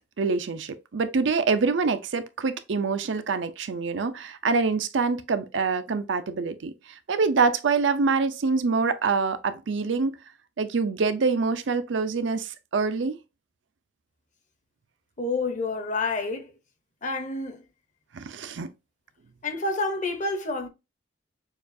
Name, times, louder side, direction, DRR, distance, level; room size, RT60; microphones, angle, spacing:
voice 1, 0.2-10.2 10.6-13.2 18.1-18.7, right 4 dB, 80° right, 0.5 m, -25 dB
voice 2, 15.2-16.5 17.0-17.6 19.4-20.7, left 3 dB, 40° left, 0.8 m, -28 dB
6.5 x 2.4 x 2.6 m
head